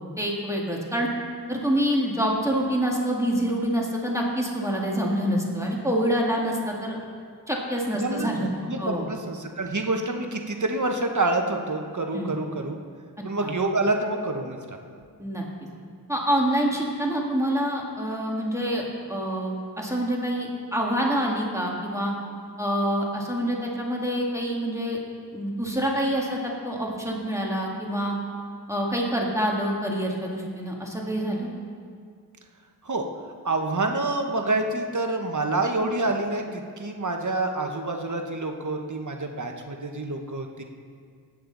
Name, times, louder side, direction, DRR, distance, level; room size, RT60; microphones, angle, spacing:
voice 1, 0.2-1.1 1.5-7.0 7.5-8.5 8.8-9.1 12.1-12.3 13.4-13.5 15.2-15.4 16.1-22.1 22.6-25.0 25.3-28.2 28.7-31.5, equal, 5° right, -2 dB, 1.7 m, -26 dB
voice 2, 8.0-12.8 13.2-14.6 32.8-33.0 33.4-40.6, right 2 dB, 45° right, 4 dB, 1.1 m, -27 dB
18.5 x 8.8 x 3.9 m, 2.1 s
wide cardioid pair, 65°, 40 cm